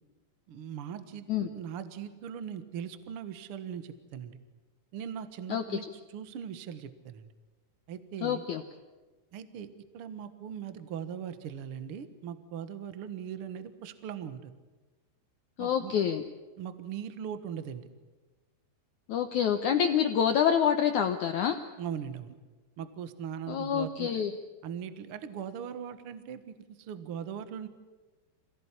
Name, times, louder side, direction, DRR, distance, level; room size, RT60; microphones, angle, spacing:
voice 1, 0.5-4.4 4.9-7.3 7.9-8.4 9.3-9.7 9.9-14.5 15.6-16.0 16.6-17.9 21.8-22.3 22.8-24.2 24.6-27.7, right 8 dB, 60° right, 11 dB, 1.4 m, -40 dB
voice 2, 8.2-8.6 15.6-16.2 19.1-21.6 23.5-24.3, left 8 dB, 70° left, 6 dB, 1.9 m, -27 dB
27.0 x 17.5 x 9.9 m, 1.2 s
omnidirectional pair, 4.7 m